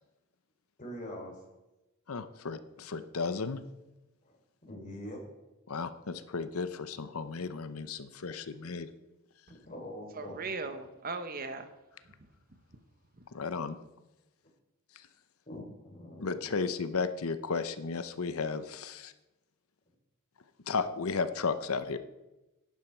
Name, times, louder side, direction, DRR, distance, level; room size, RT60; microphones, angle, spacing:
voice 1, 0.8-1.4 4.2-4.4 4.7-5.2 9.6-10.6 15.5-16.7, equal, 35° left, 0 dB, 3.5 m, -44 dB
voice 2, 2.1-3.6 5.7-8.9 13.3-13.8 15.0-15.1 16.2-19.1 20.7-22.0, left 4 dB, 80° left, 12 dB, 0.8 m, -34 dB
voice 3, 10.2-11.7, right 3 dB, 40° right, 8 dB, 1.2 m, -37 dB
11.5 x 10.5 x 4.6 m, 1.0 s
head